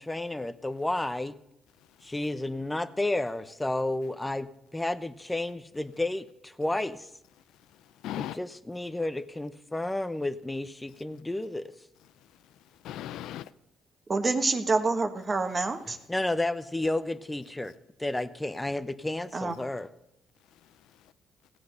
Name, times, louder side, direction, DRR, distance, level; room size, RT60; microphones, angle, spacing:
voice 1, 0.0-1.3 2.0-7.1 8.2-11.7 16.1-17.7 18.0-19.9, left 2 dB, 10° left, 0.8 m, -31 dB
voice 2, 7.6-8.4 12.2-13.5 20.5-21.1, left 12 dB, 85° left, 0.4 m, -41 dB
voice 3, 14.1-16.0 19.3-19.6, right 3 dB, 30° right, 1.3 m, -27 dB
16.5 x 7.8 x 6.5 m
cardioid pair, 90°, 0 cm